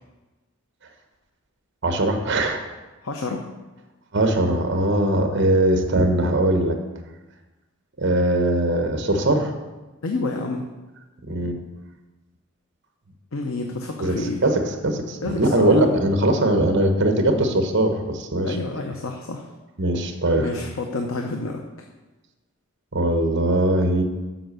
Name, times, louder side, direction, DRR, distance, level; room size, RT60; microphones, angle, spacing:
voice 1, 1.8-2.6 4.1-6.8 8.0-9.5 11.3-11.6 14.0-18.6 19.8-20.5 22.9-24.0, right 1 dB, 55° right, 5 dB, 1.2 m, -21 dB
voice 2, 3.0-3.4 10.0-10.6 13.3-14.4 15.2-16.0 18.4-19.4 20.4-21.6, left 3 dB, 75° left, 3 dB, 0.8 m, -29 dB
7.8 x 5.9 x 6.7 m, 1.2 s
head